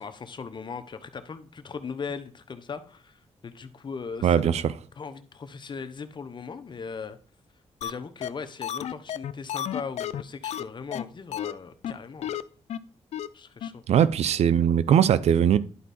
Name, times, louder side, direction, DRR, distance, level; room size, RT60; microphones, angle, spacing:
voice 1, 0.0-4.6 5.0-7.2 7.8-12.3 13.3-13.8, left 5 dB, 45° left, 1.0 m, -38 dB
voice 2, 4.2-4.7 13.9-15.6, right 9 dB, 70° right, 0.5 m, -20 dB
sound 1, 7.8-7.9 8.2-8.3 8.6-10.6 10.9-11.0 11.3-11.5 11.8-11.9 12.2-12.4 12.7-12.8 13.1-13.3 13.6-13.7 14.0-14.1, left 10 dB, 75° left, 0.5 m, -31 dB
11.0 x 4.6 x 4.3 m
cardioid pair, 90°, 11 cm